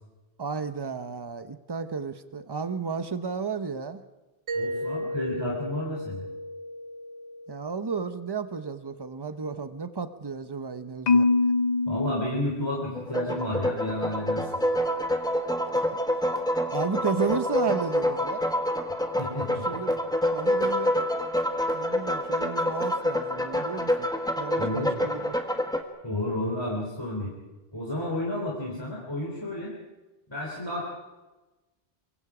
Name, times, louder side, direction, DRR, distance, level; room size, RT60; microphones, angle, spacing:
voice 1, 0.4-4.0 7.5-11.3 16.7-18.5 19.7-20.0 20.3-20.9 21.7-24.1 24.4-25.4, right 5 dB, 25° right, 10 dB, 0.8 m, -32 dB
voice 2, 4.5-6.3 11.9-14.5 19.2-19.7 24.6-24.9 26.0-27.3 27.7-29.7 30.3-30.9, left 1 dB, 25° left, -4 dB, 3.6 m, -31 dB
Mallet percussion, 4.5-9.1, equal, 80° right, 1.5 m, -36 dB
Marimba xylophone, 11.1-13.2, left 3 dB, 45° left, 0.8 m, -24 dB
sound 1, 12.9-25.8, equal, 5° left, 1.4 m, -27 dB
24.0 x 23.0 x 5.0 m, 1.1 s
omnidirectional pair, 1.1 m